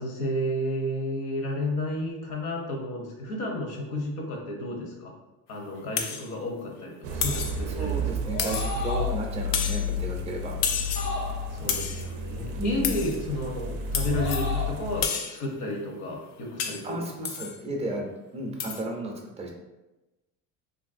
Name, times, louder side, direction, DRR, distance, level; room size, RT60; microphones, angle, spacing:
voice 1, 0.0-5.1 5.5-7.9 11.5-17.0, left 1 dB, 60° left, 0 dB, 0.8 m, -32 dB
sound 1, 6.0-6.3 7.2-7.6 8.4-8.9 9.5-9.9 10.6-11.2 11.7-12.1 12.8-13.2 13.9-14.5 15.0-15.4 16.6-16.9 17.3-17.6 18.6-18.8, left 6 dB, 80° left, 0.5 m, -30 dB
sound 2, 7.0-15.1, left 2 dB, 75° right, 0.5 m, -31 dB
voice 2, 7.8-10.6 12.5-13.0 16.8-19.5, right 2 dB, 20° right, 1 dB, 0.5 m, -34 dB
sound 3, 8.2-9.3 11.0-11.7 14.0-14.8, left 1 dB, 35° left, 0.6 m, -34 dB
2.9 x 2.6 x 2.5 m, 1.0 s
cardioid pair, 125°, 33 cm